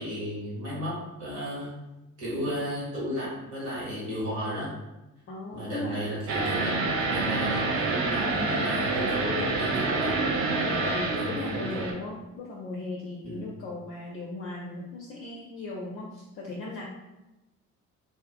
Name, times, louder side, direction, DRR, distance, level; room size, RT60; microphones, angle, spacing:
voice 1, 0.0-1.7 2.2-4.8 5.5-6.8 7.1-10.1 11.0-11.8 13.2-13.5, equal, 70° right, -7 dB, 1.3 m, -34 dB
voice 2, 5.3-6.0 6.5-6.9 10.6-16.8, left 2 dB, 35° left, -2 dB, 0.4 m, -37 dB
sound 1, 6.3-11.9, right 3 dB, 35° right, 0.5 m, -27 dB
2.4 x 2.4 x 2.4 m, 1.0 s
figure-of-eight pair, 50°, 42 cm